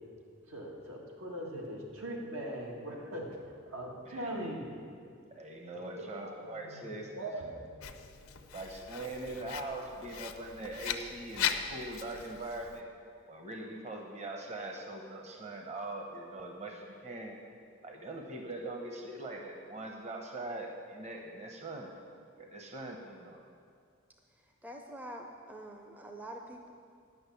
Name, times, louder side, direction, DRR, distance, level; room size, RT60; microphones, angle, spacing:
voice 1, 0.5-4.7 5.7-8.5, right 1 dB, 85° right, -1 dB, 1.9 m, -41 dB
voice 2, 4.1-4.4 5.3-7.2 8.5-12.9 13.3-17.4 17.8-21.9 22.4-23.4, right 2 dB, 30° right, 2 dB, 0.9 m, -42 dB
Writing, 7.8-12.8, left 9 dB, 80° left, 0.6 m, -39 dB
voice 3, 24.6-26.7, right 1 dB, 10° right, 2 dB, 0.5 m, -45 dB
10.5 x 6.2 x 8.3 m, 2.3 s
head